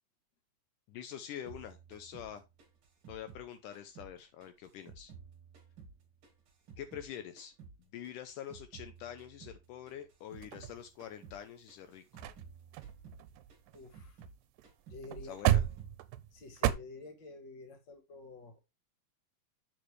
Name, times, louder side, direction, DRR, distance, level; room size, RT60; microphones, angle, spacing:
voice 1, 0.9-2.4 3.1-5.1 6.8-7.5 7.8-12.3 15.2-15.6, left 10 dB, 80° left, 9 dB, 2.1 m, -46 dB
sound 1, 1.5-4.2 4.4-7.1 7.4-10.7 11.0-11.4 11.7-14.4 14.6-15.1 15.3-16.0, right 5 dB, 45° right, 2.4 m, -54 dB
sound 2, 10.4-11.3 11.8-11.9 12.2-12.4 12.7-14.3 14.6-14.7 15.0-16.7, right 12 dB, 80° right, 2.2 m, -33 dB
voice 2, 13.7-14.2 14.9-15.6 16.3-18.6, left 3 dB, 40° left, 5 dB, 1.8 m, -49 dB
7.6 x 6.4 x 3.2 m, 0.24 s
omnidirectional pair, 4.0 m